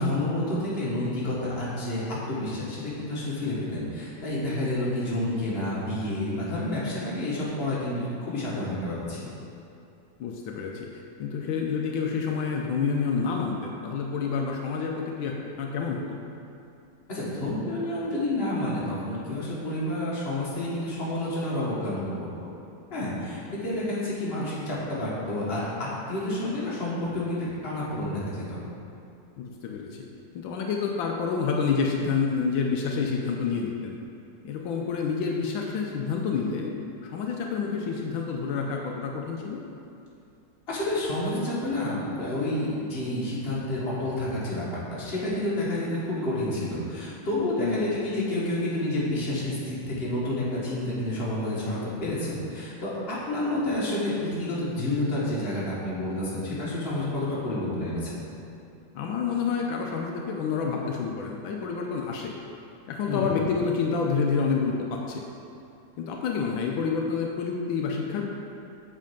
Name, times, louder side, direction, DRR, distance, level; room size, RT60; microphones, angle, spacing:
voice 1, 0.0-9.3 17.1-22.0 22.9-28.6 40.7-44.7 44.9-58.2 63.1-63.4, left 1 dB, 30° left, -7 dB, 1.7 m, -29 dB
voice 2, 10.2-10.9 11.2-16.0 23.5-23.6 29.4-30.0 30.3-34.0 34.4-36.7 37.0-39.6 47.6-47.9 58.9-62.3 62.9-65.2 66.0-68.3, left 5 dB, 80° left, 0 dB, 1.4 m, -28 dB
7.5 x 4.5 x 5.2 m, 2.6 s
omnidirectional pair, 2.1 m